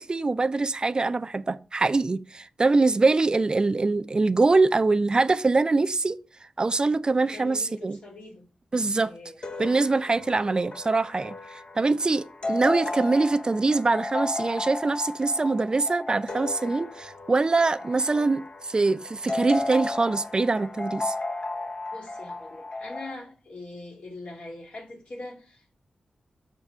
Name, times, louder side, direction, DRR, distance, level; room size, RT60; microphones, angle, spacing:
voice 1, 0.0-6.2 6.6-8.0 8.7-9.1 9.6-21.1, right 3 dB, 35° right, 0.4 m, -24 dB
voice 2, 7.3-8.4 9.0-9.4 21.9-25.7, left 2 dB, 65° left, 2.1 m, -42 dB
sound 1, 9.4-23.1, left 2 dB, 45° left, 0.7 m, -34 dB
5.9 x 3.6 x 5.4 m
cardioid pair, 55°, 2 cm